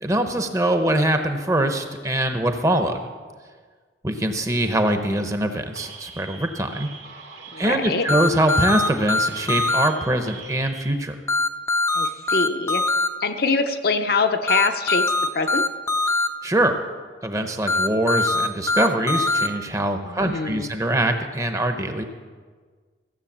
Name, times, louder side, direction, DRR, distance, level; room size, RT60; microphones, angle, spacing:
voice 1, 0.0-3.0 4.0-6.9 7.6-11.2 16.4-16.7 17.2-22.0, right 1 dB, 15° right, 6 dB, 0.8 m, -23 dB
sound 1, 5.7-10.9, right 4 dB, 85° right, 2.5 m, -42 dB
voice 2, 7.5-8.1 11.9-12.8 13.2-15.7 20.1-20.7, left 4 dB, 55° left, 7 dB, 0.7 m, -24 dB
sound 2, 8.1-9.9 11.3-13.1 14.5-16.3 17.7-19.5, left 2 dB, 15° left, 0.5 m, -21 dB
15.5 x 7.6 x 7.3 m, 1.5 s
head